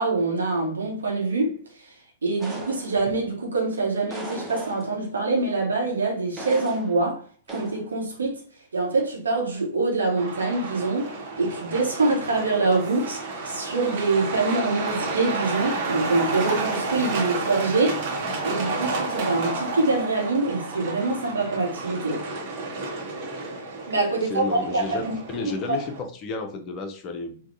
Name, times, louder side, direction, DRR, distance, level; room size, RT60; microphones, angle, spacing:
voice 1, 0.0-1.6 2.2-7.2 7.5-8.4 8.7-11.1 11.4-13.2 13.4-18.1 18.4-22.2 23.9-25.2 25.7-25.8, right 3 dB, 75° right, 0.9 m, -25 dB
sound 1, 2.4-3.3 4.1-5.1 6.4-7.1 7.5-7.9, right 2 dB, 15° right, 0.7 m, -38 dB
Truck, 10.2-26.0, right 3 dB, 45° right, 0.9 m, -31 dB
voice 2, 24.1-25.0 25.3-27.4, left 3 dB, 30° left, 0.6 m, -32 dB
3.5 x 2.3 x 2.7 m
figure-of-eight pair, 105°, 0 cm